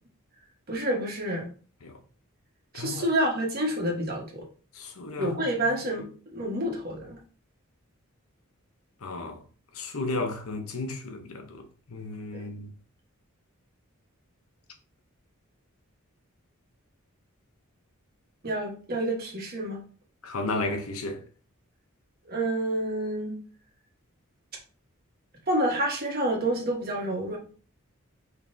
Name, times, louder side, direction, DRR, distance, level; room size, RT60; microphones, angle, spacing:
voice 1, 0.7-1.5 2.7-4.4 5.2-6.1 6.3-7.2 12.3-12.5 18.4-19.8 22.2-23.4 25.5-27.4, right 1 dB, 45° right, 1.4 m, -28 dB
voice 2, 4.7-5.4 9.0-9.4 9.7-11.6 11.9-12.7 20.2-21.2, left 2 dB, 80° left, 0.9 m, -33 dB
5.3 x 3.3 x 2.7 m
head